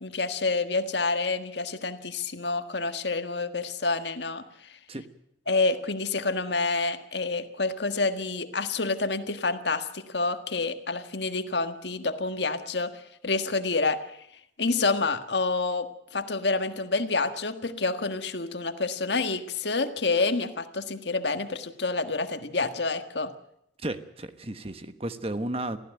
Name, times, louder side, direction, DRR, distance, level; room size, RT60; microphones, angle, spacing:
voice 1, 0.0-4.4 5.5-12.9 13.2-14.0 14.6-15.9 16.1-23.3, left 3 dB, 70° left, 9 dB, 1.6 m, -28 dB
voice 2, 23.8-25.8, right 1 dB, 30° right, 10 dB, 1.2 m, -33 dB
23.5 x 15.0 x 9.1 m, 0.77 s
head